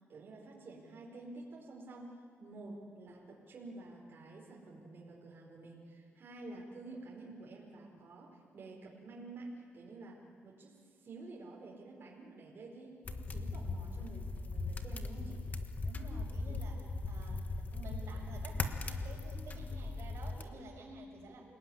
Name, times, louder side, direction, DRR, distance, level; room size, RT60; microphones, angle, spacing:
voice 1, 0.1-15.4, right 2 dB, 45° right, -3 dB, 4.8 m, -50 dB
sound 1, 13.0-20.4, left 3 dB, 35° left, 1.5 m, -39 dB
voice 2, 15.8-21.5, right 2 dB, 65° right, -6 dB, 5.8 m, -51 dB
28.0 x 19.0 x 9.9 m, 2.2 s
cardioid pair, 135°, 5 cm